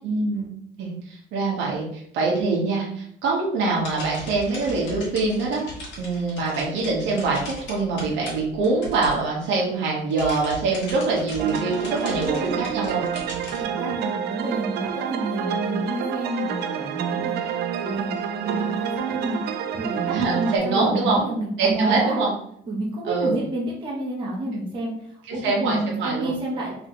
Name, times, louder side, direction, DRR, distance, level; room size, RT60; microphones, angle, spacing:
voice 1, 0.0-0.5 0.8-5.6 6.0-13.0 20.1-21.2 21.6-22.3 23.0-23.4 25.3-26.4, right 3 dB, 75° right, -3 dB, 1.3 m, -24 dB
sound 1, 3.7-9.7 10.0-13.6, equal, 70° left, 1.6 m, -39 dB
sound 2, 11.4-20.6, right 8 dB, 60° right, 0.4 m, -28 dB
voice 2, 12.2-12.7 13.6-17.4 17.8-18.1 18.4-19.4 19.7-22.2 22.7-26.8, right 1 dB, 25° right, -4 dB, 1.0 m, -29 dB
3.7 x 3.2 x 3.0 m, 0.67 s
cardioid pair, 160°, 19 cm